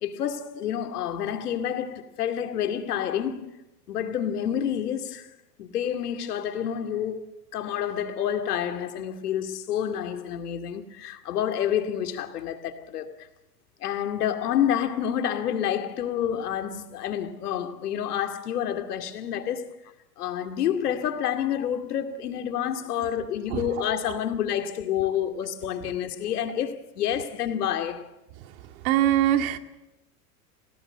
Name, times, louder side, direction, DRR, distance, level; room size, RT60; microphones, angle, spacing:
voice 1, 0.0-3.6 3.9-5.3 5.6-7.2 7.5-13.3 13.8-19.7 20.2-28.1, left 9 dB, 75° left, 2.4 m, -28 dB
voice 2, 23.5-24.0 28.8-29.6, right 12 dB, 60° right, 2.3 m, -23 dB
29.0 x 18.0 x 7.8 m
hypercardioid pair, 100°, 46 cm